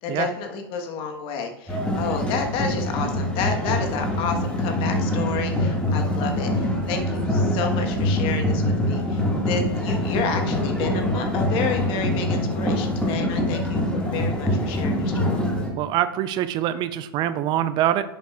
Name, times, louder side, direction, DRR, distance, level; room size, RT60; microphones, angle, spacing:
voice 1, 0.0-15.5, left 5 dB, 45° left, 4 dB, 1.2 m, -30 dB
sound 1, 1.7-15.7, left 1 dB, 10° left, 1.8 m, -24 dB
voice 2, 15.7-18.0, right 12 dB, 35° right, 13 dB, 0.5 m, -24 dB
10.5 x 6.7 x 2.3 m, 0.87 s
hypercardioid pair, 100°, 13 cm